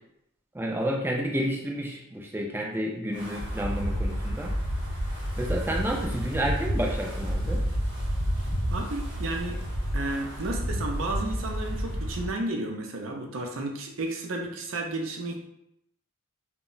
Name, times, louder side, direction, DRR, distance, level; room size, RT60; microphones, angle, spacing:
voice 1, 0.5-4.6 5.4-7.6, equal, 10° right, 0 dB, 0.3 m, -30 dB
Wind, 3.1-12.3, equal, 55° right, 0.8 m, -30 dB
voice 2, 8.7-9.6 9.9-15.5, right 2 dB, 75° right, 2 dB, 0.5 m, -32 dB
2.1 x 2.0 x 3.7 m, 0.77 s
head